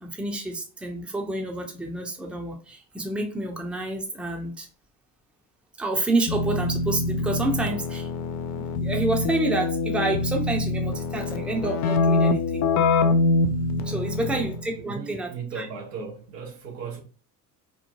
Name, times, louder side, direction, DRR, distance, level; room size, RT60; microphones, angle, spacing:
voice 1, 0.0-4.7 5.8-8.1 8.6-12.7 13.8-15.7, right 2 dB, ahead, 0.6 m, -29 dB
Keyboard (musical), 6.3-14.7, left 3 dB, 40° left, 0.4 m, -25 dB
voice 2, 13.8-17.0, right 6 dB, 75° right, 0.9 m, -37 dB
3.1 x 2.1 x 2.6 m
figure-of-eight pair, 60°, 49 cm